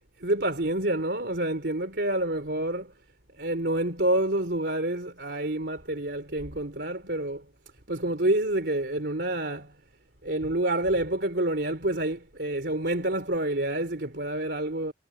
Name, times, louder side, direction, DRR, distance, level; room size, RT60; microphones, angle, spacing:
voice 1, 0.2-2.9 3.4-7.4 7.9-9.7 10.2-14.9, right 1 dB, 60° right, 3.7 m, -28 dB
head